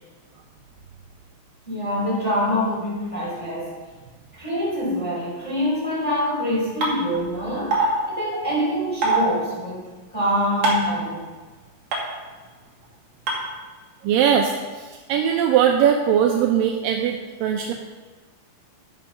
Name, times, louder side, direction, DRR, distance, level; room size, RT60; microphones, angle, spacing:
voice 1, 1.7-3.7 4.3-7.7 8.1-11.3, equal, 10° left, -7 dB, 3.7 m, -25 dB
sound 1, 6.8-6.9 7.7-7.9 9.0-9.2 10.6-10.9 11.9-12.0 13.3-13.4, right 2 dB, 45° right, 3.0 m, -19 dB
voice 2, 14.0-17.7, right 8 dB, 85° right, 2 dB, 2.0 m, -20 dB
11.5 x 7.0 x 5.6 m, 1.4 s
omnidirectional pair, 4.8 m